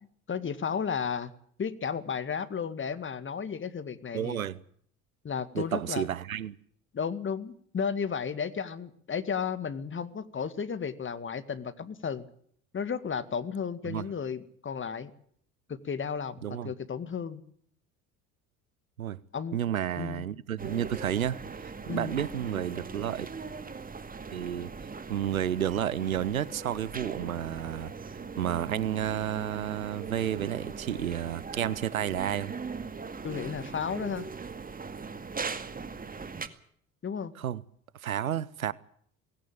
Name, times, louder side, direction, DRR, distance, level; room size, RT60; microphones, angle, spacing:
voice 1, 0.3-1.3 1.6-4.4 5.2-6.1 6.9-12.3 12.7-15.1 15.7-17.4 19.3-19.6 20.0-20.3 21.9-22.2 33.2-34.3 37.0-37.3, left 6 dB, 30° left, 2.1 m, -33 dB
voice 2, 4.1-4.6 5.5-6.6 13.8-14.1 16.4-16.7 19.0-19.2 19.5-21.4 21.9-23.3 24.3-24.7 25.1-32.5 37.4-37.6 37.9-38.7, right 10 dB, 85° right, 0.8 m, -31 dB
sound 1, 20.6-36.5, right 4 dB, 20° right, 2.1 m, -40 dB
19.0 x 17.5 x 8.6 m
figure-of-eight pair, 60°, 41 cm